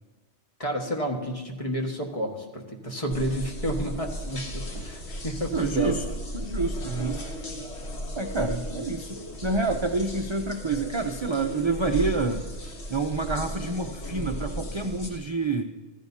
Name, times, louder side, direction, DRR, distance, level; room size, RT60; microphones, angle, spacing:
voice 1, 0.6-5.9 15.1-15.2, equal, 30° left, 1 dB, 1.6 m, -31 dB
sound 1, 3.1-15.1, equal, 70° left, 1.8 m, -35 dB
voice 2, 5.5-6.0 6.3-7.2 8.2-12.4 12.9-15.6, right 3 dB, 35° right, 4 dB, 0.5 m, -28 dB
15.5 x 14.0 x 2.8 m, 1.3 s
omnidirectional pair, 1.2 m